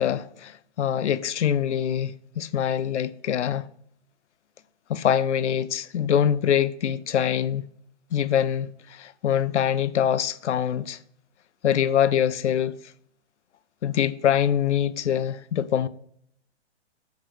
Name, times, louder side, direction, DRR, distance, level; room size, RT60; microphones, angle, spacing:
voice 1, 0.0-3.7 4.9-7.6 8.1-11.0 11.6-12.8 13.8-15.9, left 9 dB, 90° left, 0.6 m, -24 dB
6.5 x 4.7 x 6.2 m
hypercardioid pair, 140°, 34 cm